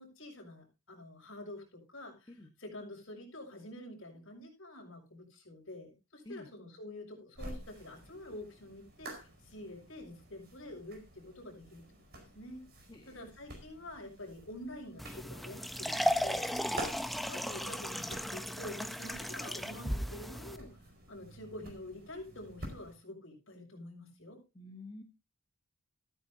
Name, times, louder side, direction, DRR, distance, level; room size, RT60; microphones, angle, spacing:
voice 1, 0.0-2.3 2.6-11.8 12.1-12.7 13.1-16.5 17.3-20.7 21.1-24.4, left 1 dB, 65° left, 1 dB, 6.4 m, -47 dB
sound 1, 7.4-22.9, right 1 dB, 45° right, 4.9 m, -50 dB
voice 2, 12.9-13.2 16.5-16.9 24.5-25.0, left 1 dB, 20° left, 2 dB, 1.3 m, -48 dB
sound 2, 15.0-20.6, equal, ahead, 0.5 m, -35 dB
14.0 x 13.5 x 2.8 m, 0.28 s
head